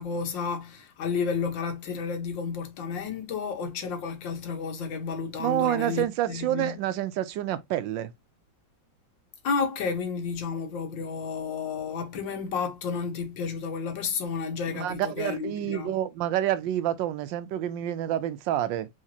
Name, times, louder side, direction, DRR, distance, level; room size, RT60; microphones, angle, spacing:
voice 1, 0.0-6.8 9.4-15.9, left 5 dB, 80° left, 1.8 m, -31 dB
voice 2, 5.4-8.1 14.7-18.9, right 12 dB, 90° right, 1.3 m, -28 dB
5.1 x 3.2 x 2.7 m
omnidirectional pair, 2.0 m